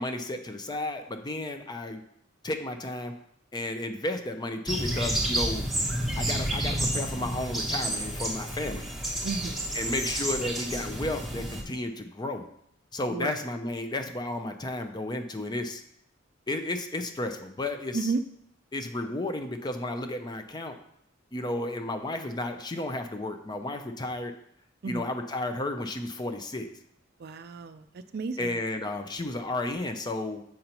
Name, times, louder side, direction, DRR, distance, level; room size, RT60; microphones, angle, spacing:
voice 1, 0.0-2.0 2.4-3.1 3.5-5.6 6.2-8.9 9.7-12.5 12.9-15.8 16.5-18.1 18.7-20.8 21.3-24.3 24.9-26.7 28.4-30.4, left 2 dB, 20° left, 6 dB, 0.5 m, -33 dB
sound 1, 4.7-11.6, right 1 dB, ahead, 1.1 m, -30 dB
voice 2, 9.2-9.7 13.1-13.4 17.9-18.2 24.8-25.1 27.2-27.9 28.1-28.6, right 4 dB, 55° right, 10 dB, 0.4 m, -32 dB
7.6 x 5.4 x 2.9 m, 0.71 s
head